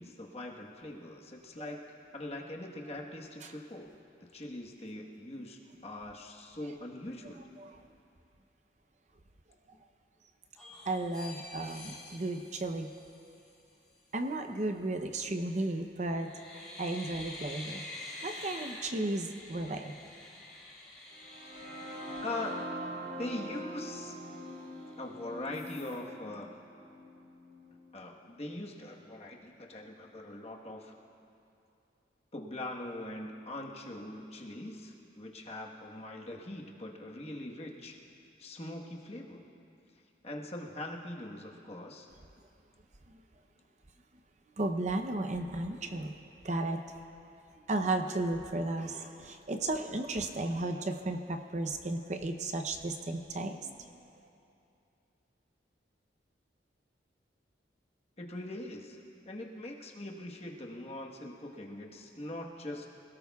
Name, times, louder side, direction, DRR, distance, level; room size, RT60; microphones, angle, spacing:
voice 1, 0.0-1.8 2.1-4.0 4.3-7.5 22.2-22.6 23.2-24.2 25.0-26.5 27.9-30.9 32.3-38.0 38.4-39.5 40.2-42.1 58.2-62.9, left 1 dB, 35° left, 0 dB, 1.3 m, -42 dB
voice 2, 7.6-7.9 10.9-12.9 14.1-17.9 18.2-19.9 43.1-43.2 44.6-46.1 46.4-46.9 47.7-54.0, right 2 dB, 40° right, 6 dB, 0.7 m, -34 dB
sound 1, 10.6-13.6 15.4-15.8 16.1-23.4 23.8-23.9 24.2-25.1 25.5-26.0, left 2 dB, 5° left, 4.2 m, -48 dB
sound 2, 21.1-29.0, equal, 85° right, 4.0 m, -44 dB
26.0 x 17.5 x 2.4 m, 2.7 s
head